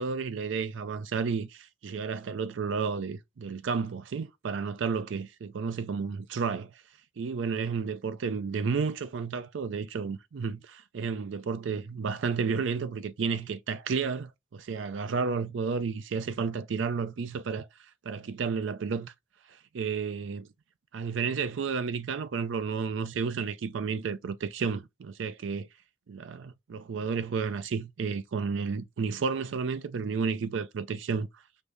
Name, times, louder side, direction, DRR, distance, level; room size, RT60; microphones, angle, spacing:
voice 1, 0.0-6.7 7.2-19.1 19.5-20.5 20.9-25.7 26.1-31.3, right 5 dB, 80° right, 0.4 m, -32 dB
5.1 x 2.6 x 3.2 m
head